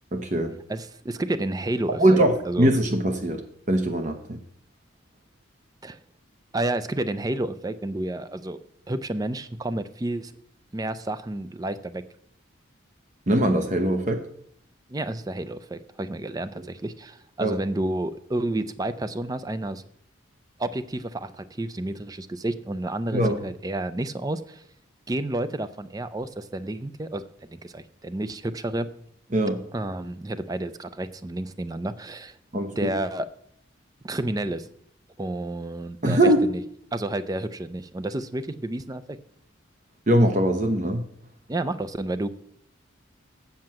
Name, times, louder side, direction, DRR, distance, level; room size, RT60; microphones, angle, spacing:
voice 1, 0.1-0.5 2.0-4.2 13.3-14.2 17.4-17.6 23.1-23.4 29.3-29.6 32.5-32.9 36.0-36.5 40.1-41.0, right 1 dB, 40° right, 5 dB, 0.8 m, -21 dB
voice 2, 0.7-2.7 5.8-6.0 6.5-8.6 8.9-10.3 10.7-12.0 14.9-19.8 20.6-24.6 25.1-28.9 29.7-32.4 32.8-33.3 34.0-34.7 35.2-36.2 36.5-36.6 36.9-39.2 41.5-42.3, right 1 dB, 20° right, 12 dB, 0.4 m, -30 dB
7.6 x 5.8 x 7.6 m, 0.70 s
head